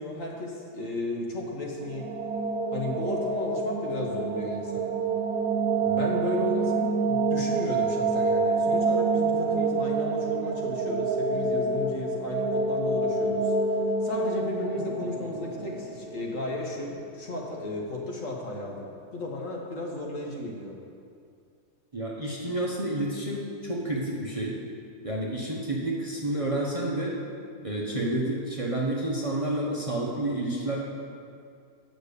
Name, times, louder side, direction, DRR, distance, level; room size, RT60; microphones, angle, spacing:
voice 1, 0.0-2.1 2.7-5.0 5.8-13.7 14.0-20.8, left 1 dB, 55° left, -1 dB, 1.6 m, -34 dB
sound 1, 1.7-16.6, right 3 dB, 85° right, 1.4 m, -27 dB
voice 2, 21.9-24.5 25.0-27.1 27.6-30.8, right 1 dB, 25° right, -4 dB, 1.0 m, -29 dB
8.8 x 6.7 x 6.8 m, 2.3 s
omnidirectional pair, 1.7 m